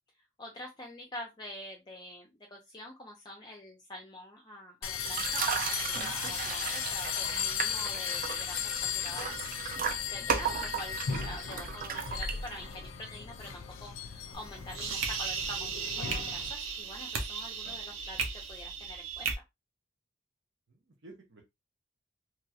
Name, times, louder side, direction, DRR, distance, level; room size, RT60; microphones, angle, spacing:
voice 1, 0.4-9.5 10.0-18.2 18.5-19.4, left 1 dB, 20° left, 0 dB, 0.6 m, -46 dB
sound 1, 4.8-16.5, left 8 dB, 75° left, 0.5 m, -36 dB
sound 2, 5.0-12.8, right 6 dB, 45° right, 0.5 m, -35 dB
sound 3, 14.3-19.3, right 5 dB, 85° right, 0.8 m, -36 dB
voice 2, 20.7-21.4, right 2 dB, 60° right, 0 dB, 0.9 m, -53 dB
3.0 x 3.0 x 2.4 m, 0.20 s
head